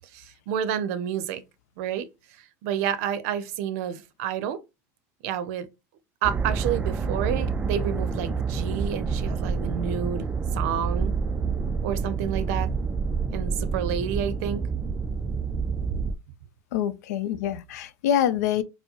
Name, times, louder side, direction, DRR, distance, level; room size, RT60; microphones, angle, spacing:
voice 1, 0.1-1.4 1.8-2.1 2.4-4.6 5.2-5.7 6.2-10.3 10.5-11.2 11.8-12.7 13.3-14.7, right 9 dB, 70° right, 0.6 m, -29 dB
sound 1, 6.2-16.1, right 5 dB, 15° right, 0.4 m, -28 dB
voice 2, 16.7-18.6, left 10 dB, 90° left, 0.5 m, -25 dB
4.5 x 2.0 x 2.9 m
supercardioid pair, 120°, 8 cm